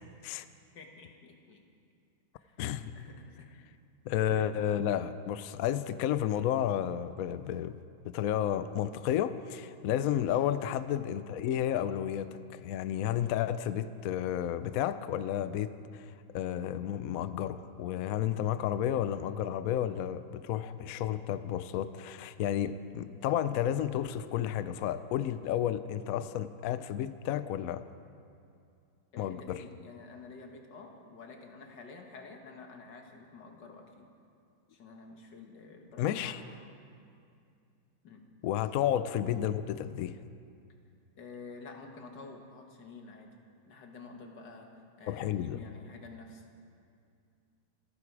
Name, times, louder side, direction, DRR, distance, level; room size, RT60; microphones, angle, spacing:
voice 1, 0.7-1.6 2.4-2.7 2.9-3.5 29.1-34.1 34.7-36.6 38.0-38.3 41.2-43.4 43.7-46.5, left 4 dB, 65° left, 2 dB, 2.2 m, -49 dB
voice 2, 4.1-7.8 8.0-27.9 29.2-29.6 36.0-36.4 38.4-40.2 45.1-45.6, left 10 dB, 80° left, 13 dB, 0.7 m, -32 dB
27.0 x 11.0 x 4.7 m, 2.4 s
omnidirectional pair, 2.1 m